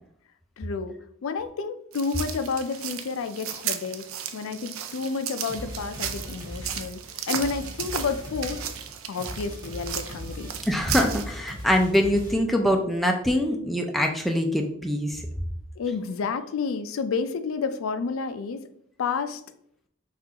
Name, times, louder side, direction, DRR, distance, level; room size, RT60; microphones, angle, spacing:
voice 1, 0.6-0.9 1.2-4.1 4.3-7.0 7.3-8.6 9.1-10.5 15.8-18.7 19.0-19.4, left 5 dB, 80° left, 9 dB, 0.4 m, -30 dB
sound 1, 1.9-11.2, right 9 dB, 90° right, 0.4 m, -35 dB
sound 2, 5.5-12.7, equal, 20° right, 1.3 m, -39 dB
voice 2, 10.7-15.2, equal, ahead, 1 dB, 0.4 m, -24 dB
5.8 x 2.4 x 2.8 m, 0.69 s
head